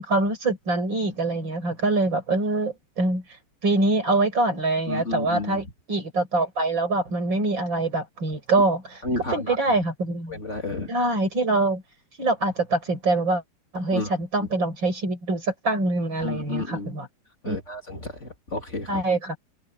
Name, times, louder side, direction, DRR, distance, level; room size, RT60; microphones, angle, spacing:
voice 1, 0.0-3.2 3.6-8.8 9.3-10.4 10.9-11.8 12.2-13.4 13.7-17.1 17.5-17.6 18.9-19.4, right 2 dB, 65° right, 6.7 m, -24 dB
voice 2, 4.9-5.6 8.3-8.4 9.0-9.6 10.3-10.9 13.9-14.1 14.4-14.5 16.2-17.0 17.4-19.0, left 3 dB, 35° left, 3.2 m, -31 dB
omnidirectional pair, 2.2 m